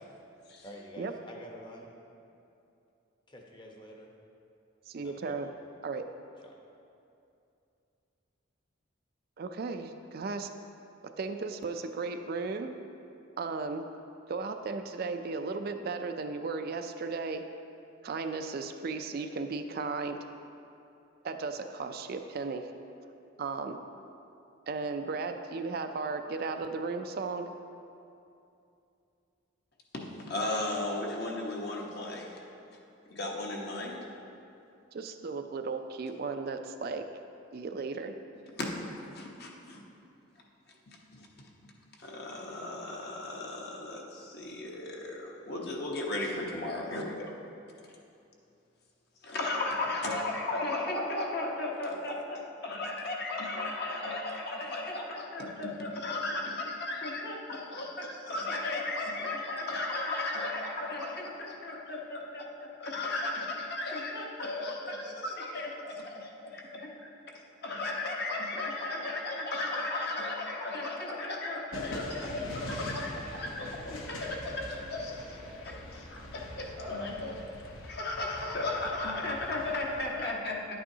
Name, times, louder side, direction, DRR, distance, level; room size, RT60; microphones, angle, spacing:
voice 1, 0.6-1.9 3.3-4.1 5.0-5.5 6.4-6.5, equal, 25° left, 0 dB, 0.8 m, -48 dB
voice 2, 4.9-5.5 5.8-6.1 9.4-10.5 11.2-12.7 13.4-13.9 14.3-17.4 18.0-20.2 21.2-22.7 23.4-23.8 24.7-27.5 34.9-37.0 37.5-38.1, right 4 dB, 45° right, 7 dB, 0.3 m, -35 dB
voice 3, 29.9-32.4 33.1-34.1 38.5-38.7 39.0-39.8 40.9-41.3 42.0-47.3 49.2-66.9 67.6-75.2 75.6-77.4 77.9-80.8, left 2 dB, 50° left, -1 dB, 1.0 m, -35 dB
sound 1, 71.7-80.2, left 1 dB, 80° left, 0.9 m, -43 dB
10.5 x 8.6 x 2.8 m, 2.7 s
head